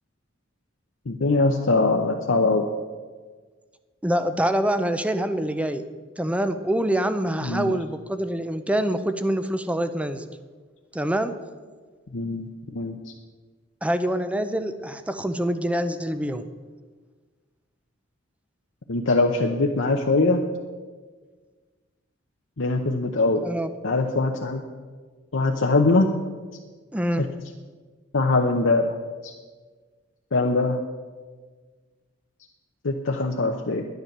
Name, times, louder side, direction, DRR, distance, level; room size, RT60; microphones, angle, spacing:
voice 1, 1.1-2.7 7.4-7.7 12.1-13.0 18.9-20.4 22.6-23.4 23.8-24.6 25.3-26.1 27.2-27.3 28.1-28.9 29.2-29.3 30.3-30.8 32.8-33.8, left 3 dB, 75° left, 1 dB, 0.8 m, -22 dB
voice 2, 4.0-5.8 6.2-10.2 10.9-11.3 13.8-16.5 23.4-23.7 26.9-27.3, right 1 dB, 5° right, 10 dB, 0.6 m, -25 dB
10.5 x 10.5 x 6.7 m, 1.4 s
head